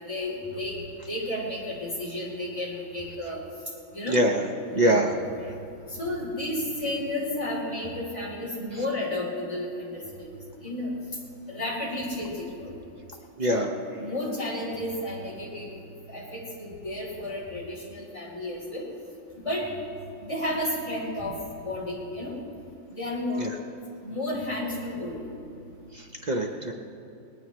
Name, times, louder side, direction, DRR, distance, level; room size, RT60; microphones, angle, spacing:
voice 1, 0.1-3.4 3.9-4.2 4.7-5.3 5.9-10.3 10.6-10.9 11.5-12.8 13.5-15.8 16.1-18.9 19.3-19.7 20.2-22.4 22.9-23.5 24.0-25.2, left 1 dB, 15° left, -4 dB, 3.6 m, -32 dB
voice 2, 4.1-4.4 4.7-5.1 5.5-5.6 13.4-13.7 23.4-23.5 25.9-26.7, right 1 dB, 85° right, 2 dB, 0.3 m, -24 dB
20.5 x 18.5 x 3.1 m, 2.7 s
omnidirectional pair, 2.1 m